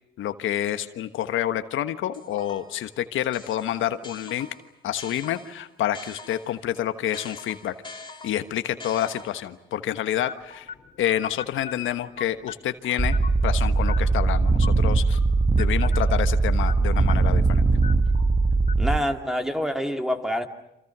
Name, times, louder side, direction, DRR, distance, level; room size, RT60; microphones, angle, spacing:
voice 1, 0.2-4.5 4.8-7.7 8.2-10.7 11.0-13.2 13.4-15.2 15.5-17.7, left 11 dB, 80° left, 10 dB, 1.3 m, -28 dB
sound 1, 2.1-2.8 3.3-6.7 7.1-9.6, left 3 dB, 25° left, 3.2 m, -44 dB
sound 2, 10.3-19.8, left 5 dB, 40° left, 2.9 m, -43 dB
sound 3, 13.0-19.0, right 3 dB, 20° right, 1.1 m, -20 dB
voice 2, 18.8-20.5, equal, ahead, 5 dB, 2.6 m, -26 dB
29.0 x 27.0 x 6.1 m, 0.85 s
cardioid pair, 90°, 20 cm